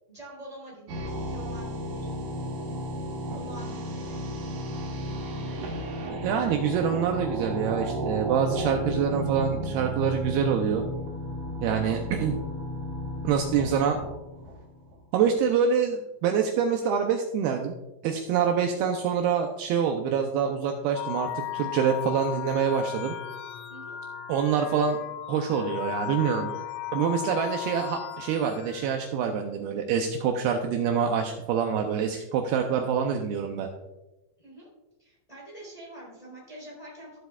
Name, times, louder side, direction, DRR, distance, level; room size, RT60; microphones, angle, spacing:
voice 1, 0.1-2.2 3.3-4.2 18.7-19.0 23.7-24.0 34.4-34.7 35.0-37.2, right 1 dB, 10° left, -5 dB, 2.7 m, -46 dB
sound 1, 0.9-15.0, equal, 65° right, 2.0 m, -34 dB
voice 2, 6.1-10.9 11.6-12.4 13.2-14.0 15.1-17.8 18.0-23.2 24.3-25.0 25.3-26.5 26.9-33.7, right 7 dB, 90° right, 3 dB, 2.2 m, -26 dB
sound 2, 21.0-28.9, left 14 dB, 80° left, 2.5 m, -36 dB
15.0 x 7.8 x 2.4 m, 1.0 s
omnidirectional pair, 5.3 m